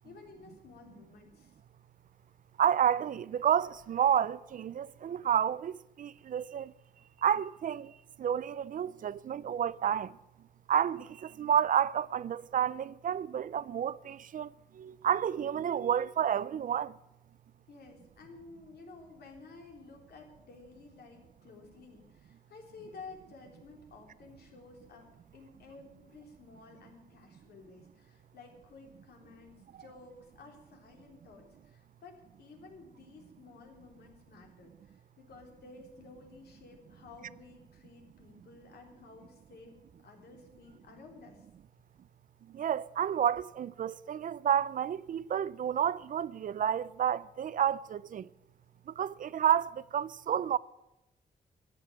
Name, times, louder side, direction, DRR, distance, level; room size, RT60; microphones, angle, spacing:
voice 1, 0.0-1.6 17.7-39.8 40.0-41.5, left 4 dB, 80° left, 3.4 m, -53 dB
voice 2, 2.6-6.7 7.2-10.2 10.7-16.9 42.5-48.3 48.9-50.6, right 9 dB, 55° right, 0.4 m, -30 dB
13.5 x 8.8 x 9.1 m
wide cardioid pair, 130°, 16 cm